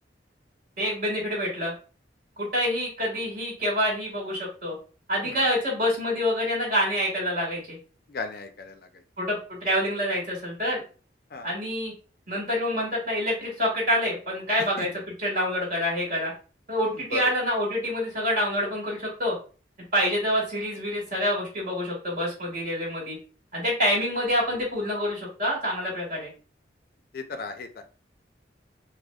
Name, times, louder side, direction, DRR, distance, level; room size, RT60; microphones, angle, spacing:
voice 1, 0.8-1.7 2.4-4.7 5.1-7.8 9.2-10.8 11.4-11.9 12.3-14.9 15.2-16.3 16.7-19.4 19.9-23.2 23.5-26.3, equal, 50° right, -3 dB, 1.8 m, -27 dB
voice 2, 8.1-9.0 11.3-11.5 14.8-14.9 16.8-17.2 27.1-27.8, left 3 dB, 55° left, 7 dB, 0.4 m, -36 dB
4.9 x 2.0 x 2.2 m, 0.36 s
head